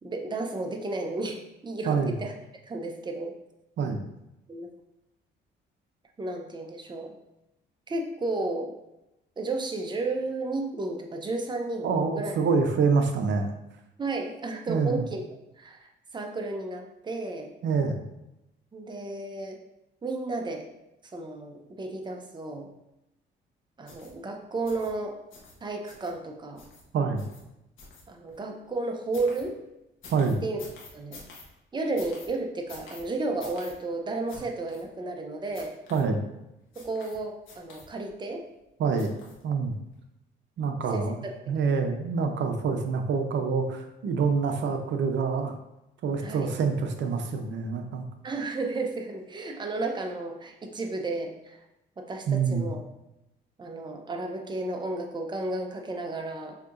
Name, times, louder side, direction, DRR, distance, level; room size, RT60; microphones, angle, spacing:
voice 1, 0.0-1.4 1.6-2.3 2.7-3.3 4.5-4.7 6.2-7.1 7.9-8.7 9.4-12.3 14.0-15.2 15.6-17.5 18.7-19.6 20.0-20.7 21.1-22.7 23.8-25.2 25.6-26.6 28.1-29.6 30.4-30.6 30.9-31.2 31.7-35.7 36.8-38.4 40.9-41.1 46.2-46.5 48.2-51.6 52.0-52.8 53.6-56.6, right 2 dB, 20° right, 3 dB, 0.7 m, -33 dB
voice 2, 11.8-13.5 14.7-15.0 17.6-18.0 26.9-27.3 30.1-30.4 35.9-36.2 38.8-39.1 39.4-39.7 40.6-41.2 41.5-45.5 46.0-48.1 52.3-52.6, right 5 dB, 65° right, 6 dB, 0.6 m, -26 dB
sound 1, 23.9-24.1 24.6-24.9 25.3-25.5 25.9-26.1 26.6-26.8 27.2-27.4 27.8-28.4 29.1-29.4 30.0-31.4 32.0-32.3 32.7-33.0 33.4-33.7 34.3-34.4 34.7-34.8 35.5-36.0 36.7-37.2 37.4-38.1 39.0-39.4 39.9-40.0, left 4 dB, 80° left, 1.2 m, -47 dB
6.4 x 2.8 x 2.5 m, 0.91 s
cardioid pair, 90°, 20 cm